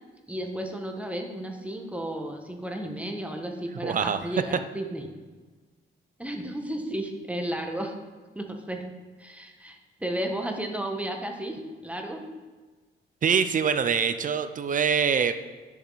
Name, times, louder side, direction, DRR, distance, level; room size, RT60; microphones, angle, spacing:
voice 1, 0.3-5.1 6.2-7.9 8.3-8.8 9.2-12.2, right 1 dB, 5° right, 3 dB, 1.3 m, -33 dB
voice 2, 3.8-4.3 13.2-15.3, right 6 dB, 40° right, 11 dB, 0.5 m, -24 dB
10.0 x 7.2 x 4.0 m, 1.4 s
cardioid pair, 90°, 20 cm